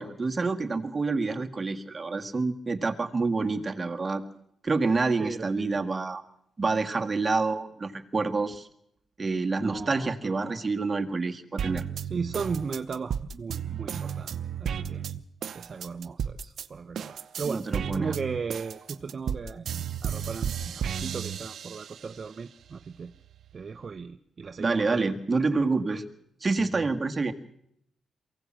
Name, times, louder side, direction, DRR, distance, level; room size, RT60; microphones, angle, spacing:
voice 1, 0.0-4.2 4.6-6.2 6.6-8.7 9.2-11.8 17.4-18.1 24.6-26.0 26.4-27.3, right 3 dB, 25° right, 5 dB, 1.7 m, -27 dB
voice 2, 5.2-5.8 9.6-10.3 12.0-14.3 14.6-15.0 15.5-17.6 17.9-23.1 23.5-25.1, right 5 dB, 45° right, 9 dB, 0.7 m, -36 dB
sound 1, 11.6-16.7 16.9-22.1 22.6-23.6, right 8 dB, 65° right, 0.8 m, -33 dB
23.0 x 16.5 x 7.5 m, 0.75 s
cardioid pair, 105°, 0 cm